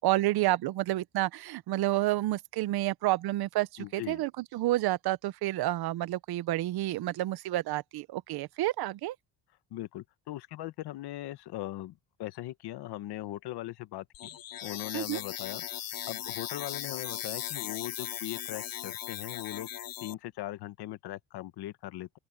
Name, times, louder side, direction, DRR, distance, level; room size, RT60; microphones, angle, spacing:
voice 1, 0.0-9.2 14.9-15.2, right 16 dB, 75° right, 0.8 m, -29 dB
voice 2, 3.8-4.2 9.7-15.8 16.1-19.7 20.0-22.2, left 15 dB, 85° left, 1.3 m, -40 dB
sound 1, 14.1-20.1, left 11 dB, 60° left, 3.0 m, -38 dB
open air
cardioid pair, 160°, 38 cm